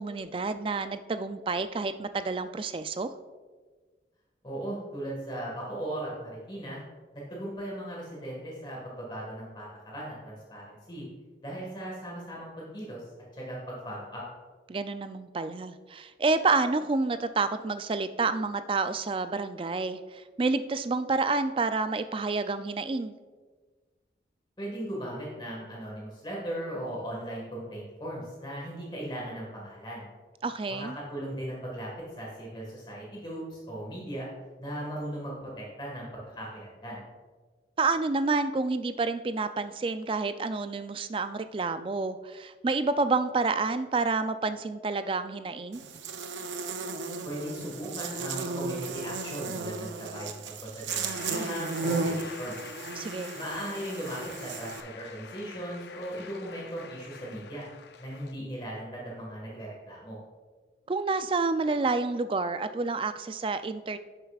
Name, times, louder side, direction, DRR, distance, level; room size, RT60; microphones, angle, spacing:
voice 1, 0.0-3.1 14.7-23.1 30.4-31.0 37.8-45.8 53.0-53.4 60.9-64.0, right 3 dB, 30° right, 11 dB, 0.3 m, -29 dB
voice 2, 4.4-6.8 7.1-11.1 11.4-13.0 13.3-14.2 24.6-30.1 30.7-31.9 32.2-34.3 34.6-37.0 47.2-50.4 50.7-52.6 53.3-57.6 58.0-60.2, right 1 dB, 25° left, -3 dB, 1.6 m, -38 dB
Buzz, 45.7-54.8, right 4 dB, 85° right, 0.6 m, -35 dB
Shout / Cheering / Applause, 50.9-58.3, left 6 dB, 70° left, 0.4 m, -46 dB
10.5 x 6.8 x 2.4 m, 1.4 s
head